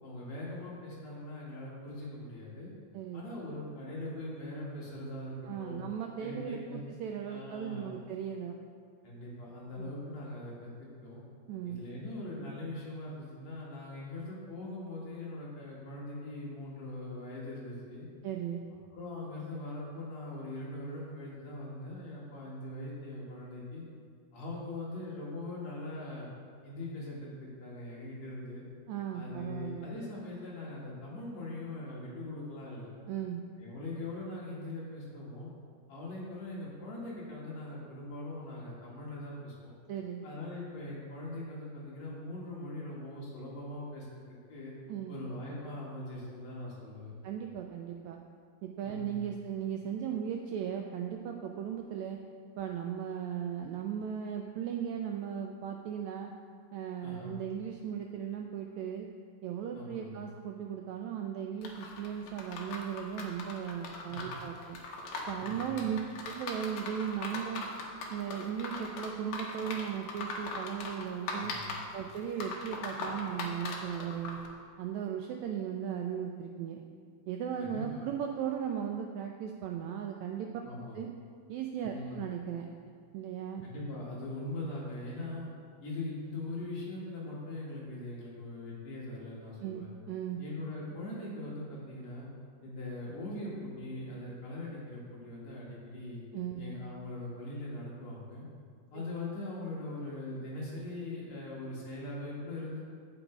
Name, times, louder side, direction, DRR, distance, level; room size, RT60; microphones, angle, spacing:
voice 1, 0.0-2.7 3.1-5.8 6.2-6.8 7.3-7.9 9.0-11.2 11.6-18.1 18.9-23.8 24.3-26.3 26.6-28.6 29.1-32.9 33.6-35.5 35.9-39.7 40.2-44.1 44.5-44.7 45.1-47.1 48.8-49.3 57.0-57.4 59.7-60.3 64.1-64.3 65.4-65.9 71.3-71.7 77.6-78.0 80.6-81.0 81.9-82.2 83.6-85.5 85.8-89.9 90.4-92.3 92.6-96.2 96.6-98.4 98.9-102.8, left 2 dB, 60° left, -6 dB, 3.1 m, -41 dB
voice 2, 2.9-3.3 5.5-8.6 9.8-9.9 11.5-11.8 18.2-18.7 28.9-29.9 33.1-33.4 39.9-40.3 44.9-45.2 47.2-48.2 48.6-52.2 52.6-56.3 56.7-59.1 59.4-64.8 65.3-66.0 66.2-67.7 68.1-71.5 71.9-74.4 74.8-76.8 77.3-80.5 80.9-81.1 81.5-82.7 83.1-83.6 89.6-90.4 96.3-96.6 98.9-99.0, right 8 dB, 80° right, 3 dB, 1.6 m, -37 dB
sound 1, 61.6-74.5, left 3 dB, 75° left, 2.4 m, -40 dB
8.8 x 8.0 x 4.6 m, 2.1 s
omnidirectional pair, 3.7 m